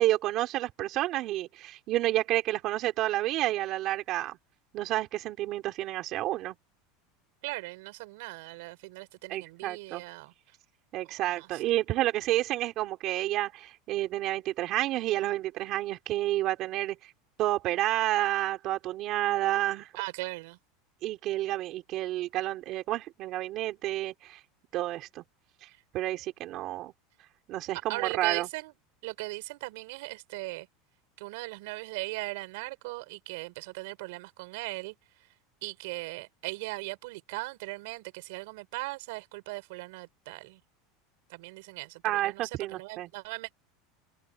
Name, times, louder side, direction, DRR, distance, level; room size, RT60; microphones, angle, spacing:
voice 1, 0.0-4.4 4.7-6.5 9.3-10.0 10.9-17.1 17.4-19.9 21.0-24.4 24.7-25.2 25.9-26.9 27.5-28.5 42.0-43.1, right 15 dB, 40° right, 4.2 m, -30 dB
voice 2, 7.4-10.3 11.4-11.6 20.0-20.6 27.9-28.7 29.0-30.7 31.2-34.9 35.6-40.6 41.3-43.5, right 24 dB, 65° right, 4.5 m, -38 dB
supercardioid pair, 165°, 0 cm